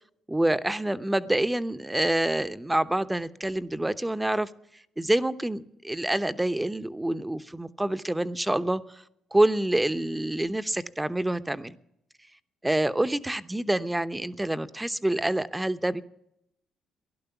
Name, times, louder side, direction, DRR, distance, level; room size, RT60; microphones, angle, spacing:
voice 1, 0.3-4.5 5.0-9.0 9.3-11.8 12.6-16.0, right 1 dB, 10° right, 13 dB, 0.9 m, -27 dB
16.0 x 11.5 x 7.1 m, 0.78 s
supercardioid pair, 65°, 0 cm